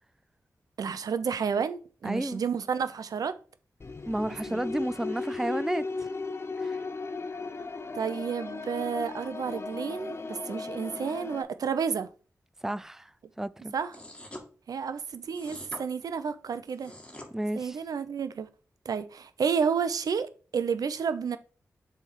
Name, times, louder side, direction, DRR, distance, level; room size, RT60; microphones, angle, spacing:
voice 1, 0.8-3.3 4.5-4.6 7.9-12.1 13.7-13.9 14.7-16.9 17.5-18.5 18.9-21.4, right 6 dB, 85° right, 0.5 m, -31 dB
voice 2, 2.0-2.4 4.1-6.1 6.6-6.8 12.6-13.1 13.4-13.7 17.3-17.8, right 1 dB, 5° right, 0.3 m, -32 dB
sound 1, 3.8-11.4, left 4 dB, 45° left, 0.6 m, -36 dB
sound 2, 13.9-14.5 15.3-15.8 16.7-17.3, left 1 dB, 15° left, 1.6 m, -44 dB
7.0 x 3.4 x 4.6 m
cardioid pair, 55°, 6 cm